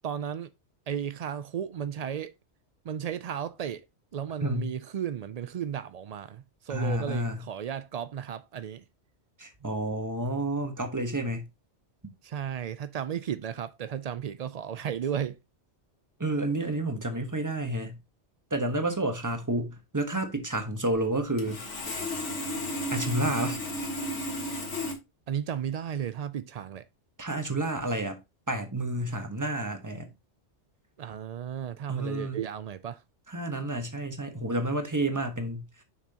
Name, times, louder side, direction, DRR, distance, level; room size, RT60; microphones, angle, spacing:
voice 1, 0.0-0.5 0.9-2.3 2.8-3.8 4.1-8.8 12.2-15.4 25.3-26.8 31.0-33.0, right 9 dB, 80° right, 0.3 m, -34 dB
voice 2, 4.4-4.7 6.7-7.4 9.4-11.5 16.2-18.0 18.5-21.6 22.9-23.6 27.2-28.2 28.5-30.1 31.9-32.4 33.3-35.7, right 1 dB, 15° right, 1.1 m, -30 dB
Sawing, 20.9-21.0 21.4-24.9, equal, 75° left, 1.9 m, -33 dB
6.8 x 6.1 x 2.8 m
omnidirectional pair, 1.2 m